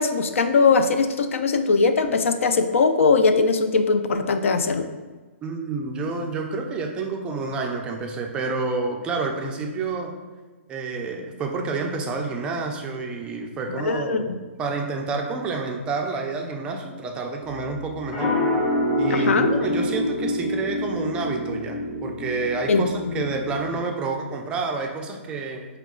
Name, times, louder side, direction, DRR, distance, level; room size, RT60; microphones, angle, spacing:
voice 1, 0.0-4.9 13.8-14.2 19.1-19.5 22.7-23.2, left 4 dB, 80° left, 8 dB, 0.4 m, -20 dB
voice 2, 5.4-10.2 10.7-18.3 19.0-25.7, right 3 dB, 15° right, 2 dB, 0.3 m, -29 dB
sound 1, 17.4-23.8, left 1 dB, 30° left, 0.8 m, -26 dB
4.6 x 2.3 x 3.6 m, 1.3 s
hypercardioid pair, 155°, 7 cm